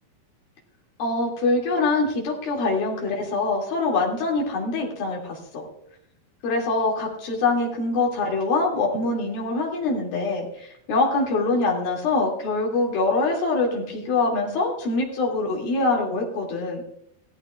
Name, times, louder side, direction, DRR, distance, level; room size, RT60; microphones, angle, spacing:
voice 1, 1.0-5.6 6.4-16.8, left 3 dB, 75° left, -1 dB, 4.3 m, -24 dB
17.5 x 14.0 x 2.4 m, 0.71 s
omnidirectional pair, 4.3 m